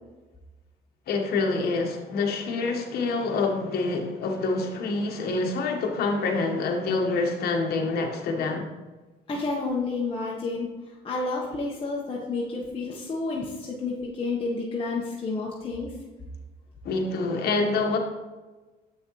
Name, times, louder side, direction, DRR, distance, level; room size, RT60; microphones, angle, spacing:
voice 1, 1.1-8.7 16.8-18.0, left 3 dB, 65° left, 2 dB, 1.3 m, -26 dB
voice 2, 9.3-10.7 11.0-15.9, left 3 dB, 35° left, -4 dB, 1.2 m, -30 dB
7.7 x 6.3 x 3.1 m, 1.2 s
cardioid pair, 110°, 17 cm